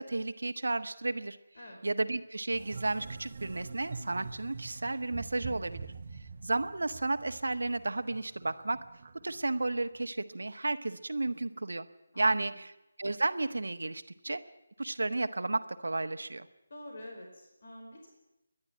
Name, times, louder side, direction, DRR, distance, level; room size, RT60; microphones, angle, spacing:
voice 1, 0.0-1.4 1.8-5.9 6.4-8.8 9.2-11.9 12.2-12.7 13.0-14.4 14.8-16.5, right 2 dB, 65° right, 10 dB, 1.3 m, -32 dB
sound 1, 2.5-10.0, right 4 dB, 45° right, 1.3 m, -45 dB
voice 2, 12.1-12.4 16.7-18.1, left 1 dB, 55° left, 2 dB, 4.6 m, -47 dB
29.0 x 11.5 x 10.0 m, 0.91 s
figure-of-eight pair, 155°, 0 cm